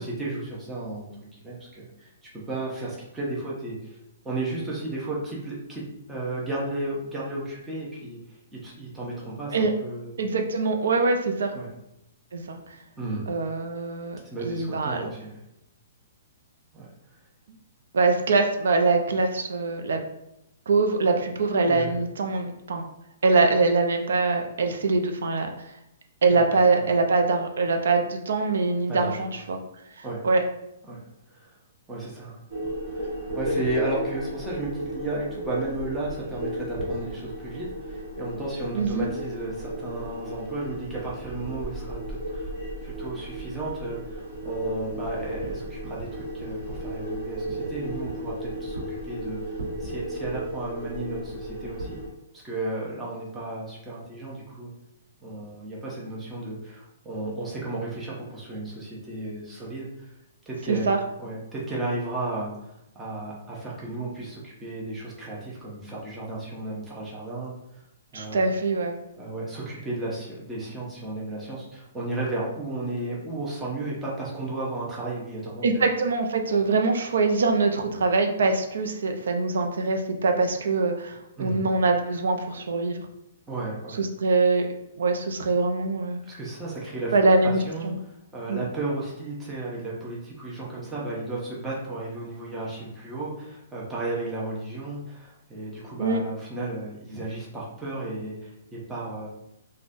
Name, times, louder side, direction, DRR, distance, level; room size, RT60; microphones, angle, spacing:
voice 1, 0.0-4.0 4.2-10.2 11.5-11.7 13.0-13.3 14.2-15.4 16.7-16.9 21.6-22.0 26.3-26.8 28.9-29.4 30.0-30.3 30.9-31.0 31.3-31.6 31.9-32.4 32.9-42.5 42.8-52.0 52.3-54.7 55.2-60.1 60.5-60.9 61.2-67.8 68.1-68.5 69.2-75.7 81.4-81.6 83.5-84.0 86.2-99.3, right 2 dB, 5° right, -6 dB, 0.5 m, -34 dB
voice 2, 10.2-11.5 12.3-12.6 13.3-15.1 17.9-20.0 20.7-22.8 23.2-25.5 26.2-29.6 30.0-30.4 38.7-39.1 60.7-61.0 68.1-69.0 75.6-83.0 84.0-84.7 85.0-86.2 87.1-88.0 88.5-88.6 96.0-96.2, right 3 dB, 70° right, 4 dB, 0.4 m, -23 dB
sound 1, 32.5-52.1, equal, 55° right, 1.2 m, -34 dB
3.7 x 2.1 x 2.5 m, 0.83 s
hypercardioid pair, 180°, 0 cm